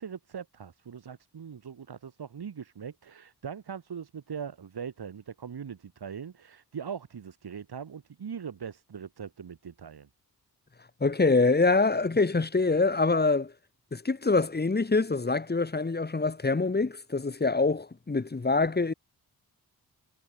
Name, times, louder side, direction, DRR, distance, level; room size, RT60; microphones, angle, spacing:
voice 1, 0.0-10.1, right 7 dB, 75° right, 7.1 m, -41 dB
voice 2, 11.0-13.5 13.9-18.9, left 3 dB, 25° left, 2.3 m, -25 dB
wide cardioid pair, 165°, 39 cm